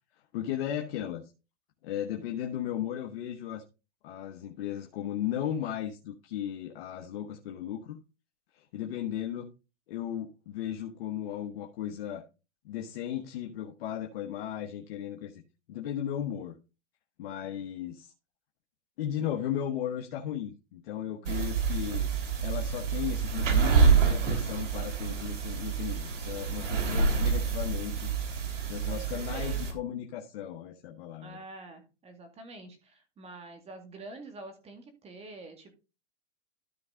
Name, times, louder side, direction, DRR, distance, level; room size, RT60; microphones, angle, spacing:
voice 1, 0.3-1.2 1.8-3.6 4.0-8.0 8.5-9.5 9.9-12.2 12.6-15.4 15.7-16.5 17.2-18.1 19.0-22.1 22.4-28.1 28.7-31.4, left 10 dB, 55° left, 3 dB, 1.3 m, -36 dB
voice 2, 21.2-21.6 26.7-27.3 28.9-29.8 31.2-35.7, right 2 dB, 15° right, 6 dB, 2.2 m, -47 dB
sound 1, 21.3-29.7, right 5 dB, 85° right, 3.2 m, -27 dB
13.0 x 4.7 x 3.8 m, 0.30 s
hypercardioid pair, 140°, 36 cm